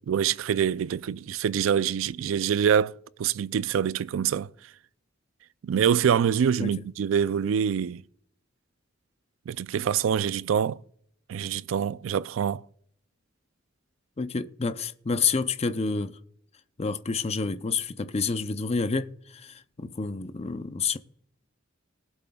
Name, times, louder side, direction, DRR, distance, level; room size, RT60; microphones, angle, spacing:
voice 1, 0.1-4.5 5.6-8.0 9.5-10.8 11.3-12.6, right 8 dB, 90° right, 0.3 m, -25 dB
voice 2, 14.2-16.2 16.8-21.0, left 4 dB, 30° left, 0.5 m, -29 dB
20.0 x 7.9 x 2.3 m
head